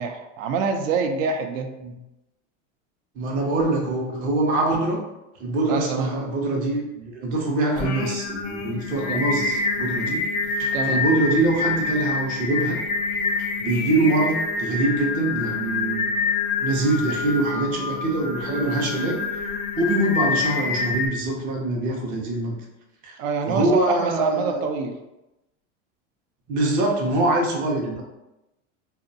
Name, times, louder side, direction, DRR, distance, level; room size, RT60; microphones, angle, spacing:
voice 1, 0.0-1.7 5.7-6.1 9.1-9.2 10.7-11.0 23.2-25.0, right 5 dB, 80° right, 5 dB, 0.5 m, -26 dB
voice 2, 3.2-5.0 5.4-10.2 10.6-12.8 13.6-16.1 16.6-19.5 19.8-22.6 23.0-23.2 23.5-24.6 26.5-28.0, right 2 dB, 25° right, -1 dB, 0.4 m, -24 dB
Singing, 7.8-21.1, left 4 dB, 45° left, 0.4 m, -27 dB
2.6 x 2.0 x 2.6 m, 0.96 s
supercardioid pair, 135°, 38 cm